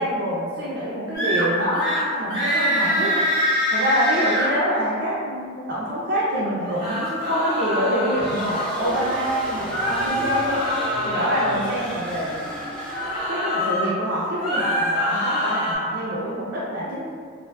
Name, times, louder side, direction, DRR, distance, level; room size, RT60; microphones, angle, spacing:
voice 1, 0.0-12.4 13.3-17.1, equal, 65° right, -8 dB, 0.4 m, -26 dB
sound 1, 1.1-1.4 1.7-2.0 2.3-4.5 6.6-8.7 9.7-11.4 12.8-13.9 14.3-15.7, equal, 25° left, 1.0 m, -24 dB
sound 2, 8.2-13.5, equal, 5° left, 0.3 m, -33 dB
2.5 x 2.4 x 2.2 m, 2.1 s
head